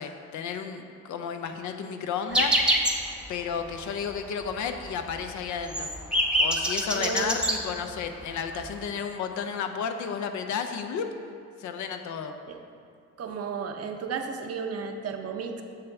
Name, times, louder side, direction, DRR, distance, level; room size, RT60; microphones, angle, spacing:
voice 1, 0.0-2.6 3.3-5.9 6.4-11.1 11.6-12.3, left 6 dB, 75° left, 6 dB, 0.6 m, -32 dB
sound 1, 2.3-3.1 3.4-3.5 3.8-4.1 4.4-4.5 4.9-7.6 8.4-8.5 8.6-8.9, equal, 5° right, 0.8 m, -25 dB
voice 2, 6.9-7.6 12.5-12.6 13.2-15.6, right 5 dB, 55° right, 5 dB, 0.7 m, -33 dB
6.9 x 6.7 x 3.5 m, 2.3 s
cardioid pair, 90°, 30 cm